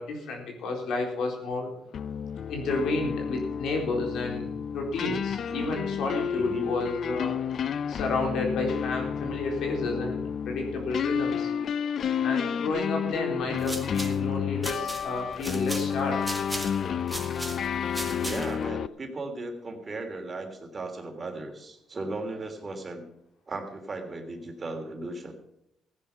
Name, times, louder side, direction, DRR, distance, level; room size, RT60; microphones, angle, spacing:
voice 1, 0.0-1.7 2.5-4.4 4.7-7.3 7.9-10.2 10.5-11.5 12.2-16.2, left 3 dB, 80° left, 2 dB, 3.9 m, -31 dB
sound 1, 1.9-18.9, left 7 dB, 60° left, 0.5 m, -31 dB
voice 2, 5.5-5.8 6.3-6.7 18.2-23.0 23.5-25.3, right 2 dB, 35° right, 4 dB, 3.2 m, -36 dB
sound 2, 13.4-18.7, right 1 dB, 10° right, 2.1 m, -38 dB
15.5 x 10.0 x 5.7 m, 0.81 s
cardioid pair, 90°, 0 cm